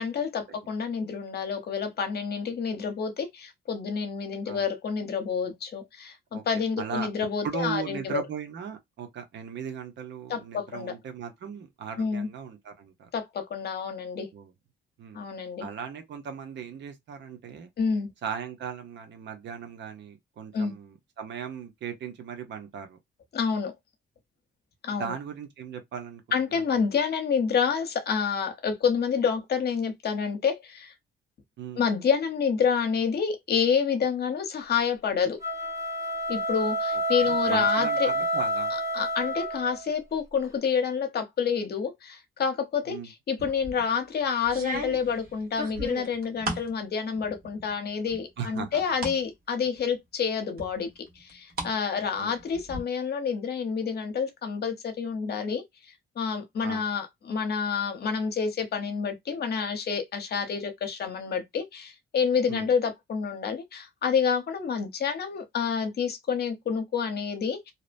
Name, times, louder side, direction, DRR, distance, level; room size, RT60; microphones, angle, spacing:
voice 1, 0.0-8.2 10.3-10.9 12.0-12.3 13.1-14.3 15.1-15.7 17.8-18.1 20.5-20.7 23.3-23.7 24.8-25.1 26.3-30.9 31.8-35.4 36.3-38.1 38.9-50.9 51.2-55.6 56.2-67.7, left 6 dB, 55° left, 0.8 m, -28 dB
voice 2, 6.3-7.1 7.4-13.1 14.3-14.5 15.0-15.2 15.6-17.7 18.2-23.0 24.9-26.8 31.6-31.8 37.2-38.7 42.9-43.1 48.4-48.8 52.2-52.3 56.6-56.8 62.5-62.7, right 7 dB, 65° right, 0.8 m, -38 dB
sound 1, 35.3-39.9, equal, 15° right, 0.9 m, -28 dB
sound 2, 43.4-43.8 44.5-46.7 47.2-47.7 48.1-49.2 49.6-49.7 50.6-51.7 52.0-52.8, right 1 dB, 50° right, 1.2 m, -36 dB
2.8 x 2.1 x 2.5 m
cardioid pair, 95°, 20 cm